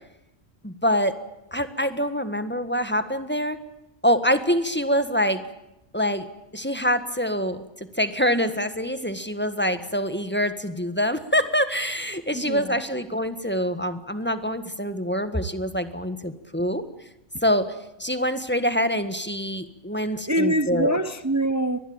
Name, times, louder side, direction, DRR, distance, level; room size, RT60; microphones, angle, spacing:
voice 1, 0.6-1.1 1.5-3.6 4.0-5.4 5.9-6.3 6.5-16.8 17.4-17.7 18.0-21.0, equal, 10° left, 1.5 m, -25 dB
voice 2, 12.3-12.8 20.3-21.8, right 1 dB, 15° right, 0.8 m, -24 dB
24.0 x 20.0 x 8.8 m
omnidirectional pair, 1.2 m